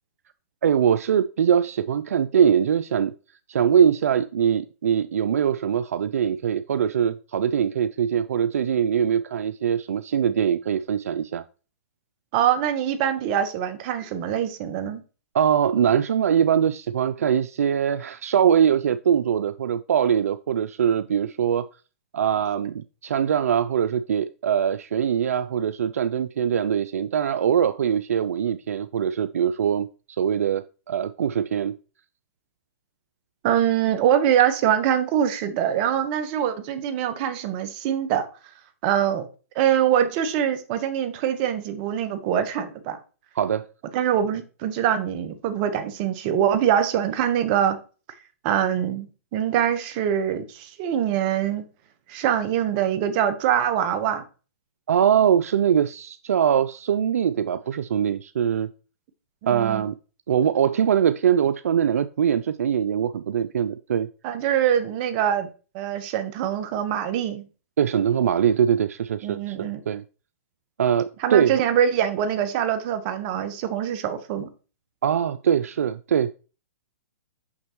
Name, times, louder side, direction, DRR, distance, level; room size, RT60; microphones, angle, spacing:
voice 1, 0.6-3.1 3.5-11.4 15.3-21.7 22.1-29.9 30.2-31.7 43.4-43.7 54.9-58.7 59.5-59.9 60.3-64.1 67.8-70.0 70.8-71.6 75.0-76.4, right 8 dB, 80° right, 0.3 m, -22 dB
voice 2, 12.3-15.0 33.4-38.3 38.8-39.3 39.5-43.0 43.9-47.8 48.4-51.6 52.1-54.2 59.4-59.9 64.2-65.5 65.7-67.5 69.2-69.8 71.2-74.5, right 9 dB, 40° right, 1.1 m, -24 dB
6.1 x 5.9 x 3.0 m
hypercardioid pair, 130°, 8 cm